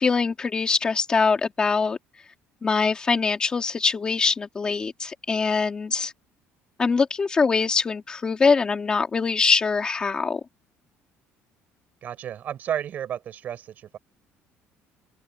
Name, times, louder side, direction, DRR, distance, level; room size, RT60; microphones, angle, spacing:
voice 1, 0.0-2.0 2.6-6.1 6.8-10.4, left 4 dB, 20° left, 2.6 m, -23 dB
voice 2, 12.0-14.0, right 10 dB, 35° right, 7.5 m, -32 dB
cardioid pair, 180°, 5 cm